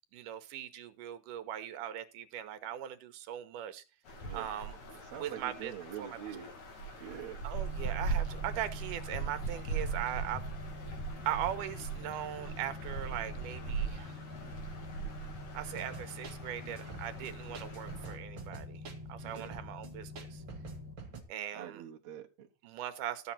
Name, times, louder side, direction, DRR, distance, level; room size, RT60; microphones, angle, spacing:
voice 1, 0.1-3.8 4.3-4.7 5.2-5.7 6.0-6.2 7.4-10.4 11.3-14.1 15.5-18.8 19.1-20.4 21.3-21.8 22.6-23.3, right 11 dB, 85° right, 2.6 m, -39 dB
sound 1, 4.1-18.2, right 4 dB, 65° left, 4.0 m, -40 dB
voice 2, 5.0-6.5 7.0-7.4 19.2-19.5 21.5-22.5, right 10 dB, 65° right, 2.3 m, -45 dB
sound 2, 7.5-20.9, left 3 dB, 5° right, 1.3 m, -47 dB
sound 3, 15.7-21.2, right 5 dB, 40° right, 2.2 m, -47 dB
13.0 x 7.3 x 4.3 m
omnidirectional pair, 3.6 m